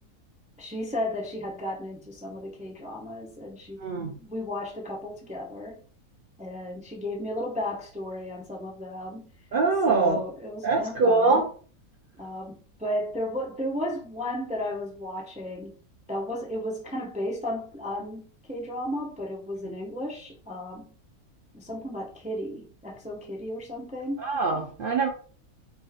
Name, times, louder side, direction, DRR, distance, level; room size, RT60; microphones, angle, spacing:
voice 1, 0.6-3.8 4.2-5.8 6.4-9.3 9.9-11.5 12.2-15.7 16.1-20.9 21.5-24.3, left 1 dB, 10° right, -1 dB, 0.3 m, -34 dB
voice 2, 3.8-4.1 9.5-10.2 10.6-11.4 24.2-25.1, right 3 dB, 65° right, 1 dB, 0.5 m, -23 dB
3.6 x 2.5 x 4.1 m, 0.41 s
omnidirectional pair, 1.6 m